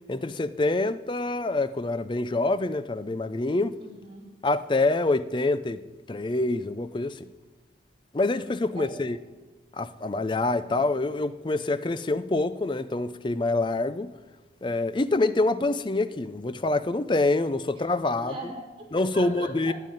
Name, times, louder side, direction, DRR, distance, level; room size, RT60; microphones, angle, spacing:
voice 1, 0.1-3.8 4.4-5.8 6.1-7.3 8.1-9.2 9.7-14.1 14.6-18.4 18.9-19.7, left 2 dB, 25° left, 0.4 m, -26 dB
voice 2, 3.8-4.3 8.8-9.0 10.7-10.9 15.6-15.7 18.2-19.7, right 1 dB, 30° right, 2.6 m, -40 dB
9.3 x 9.2 x 9.0 m
head